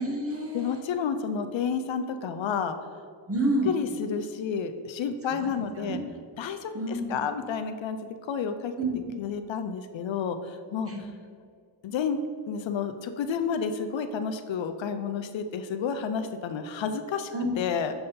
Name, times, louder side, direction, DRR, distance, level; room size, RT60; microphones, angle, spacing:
voice 1, 0.0-0.7 3.3-3.8 5.3-6.1 6.7-7.2 8.8-9.2 10.9-11.0 17.3-17.5, right 1 dB, 30° right, 1 dB, 1.1 m, -29 dB
voice 2, 0.5-2.8 3.7-6.0 6.4-8.0 8.3-8.7 9.2-10.9 11.8-12.2 12.5-17.3 17.6-17.9, left 6 dB, 70° left, 9 dB, 0.5 m, -30 dB
6.7 x 3.5 x 4.2 m, 2.2 s
cardioid pair, 70°, 48 cm